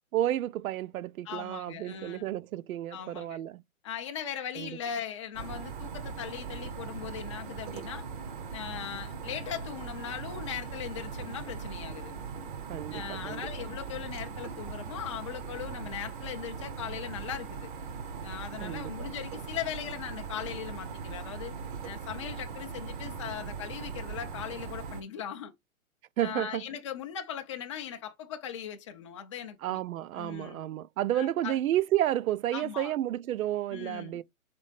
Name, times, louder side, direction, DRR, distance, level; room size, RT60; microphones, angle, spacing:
voice 1, 0.1-3.6 4.6-4.8 12.7-13.7 18.6-19.1 26.2-26.7 29.6-34.2, right 12 dB, 75° right, 0.5 m, -31 dB
voice 2, 1.3-2.3 2.9-3.4 3.8-8.0 8.5-12.1 12.9-17.7 18.2-21.5 21.8-25.5 26.2-29.8 30.2-30.6 31.1-31.6 32.5-32.9 33.7-34.2, left 9 dB, 25° left, 0.4 m, -39 dB
sound 1, 5.3-25.0, right 5 dB, 35° right, 0.7 m, -40 dB
4.2 x 3.2 x 3.1 m
hypercardioid pair, 145°, 42 cm